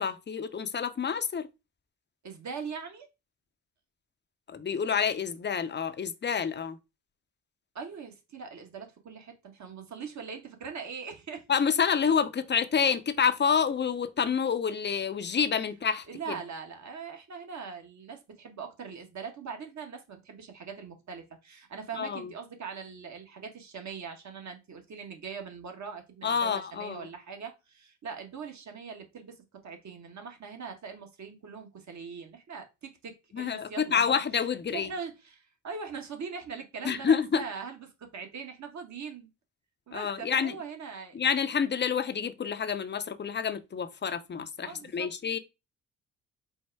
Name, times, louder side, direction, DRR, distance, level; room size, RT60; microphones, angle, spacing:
voice 1, 0.0-1.5 4.5-6.8 11.5-16.4 22.0-22.3 26.2-27.1 33.3-34.9 36.8-37.4 39.9-40.6 41.1-45.4, left 6 dB, 30° left, 0.6 m, -28 dB
voice 2, 2.2-3.1 7.7-11.4 16.1-34.2 34.7-39.3 39.9-41.2 44.6-45.1, right 6 dB, 50° right, 1.4 m, -41 dB
4.4 x 2.1 x 4.6 m
supercardioid pair, 55°, 36 cm